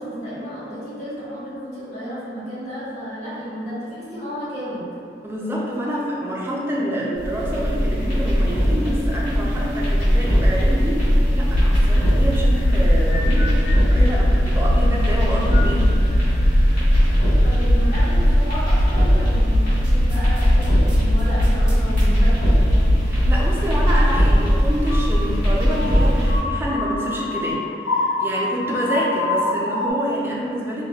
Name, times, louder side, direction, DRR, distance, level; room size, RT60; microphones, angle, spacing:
voice 1, 0.0-4.8 17.2-22.9, equal, 40° left, -11 dB, 1.3 m, -32 dB
voice 2, 5.2-13.5 13.9-16.0 23.1-30.8, equal, 15° right, -5 dB, 0.4 m, -27 dB
sound 1, 7.1-26.4, equal, 60° left, 1.3 m, -19 dB
sound 2, 11.5-23.4 23.8-29.9, left 1 dB, 85° left, 0.3 m, -24 dB
sound 3, 19.8-22.1 23.7-23.8, right 2 dB, 85° right, 1.0 m, -44 dB
4.8 x 2.2 x 2.3 m, 2.6 s
head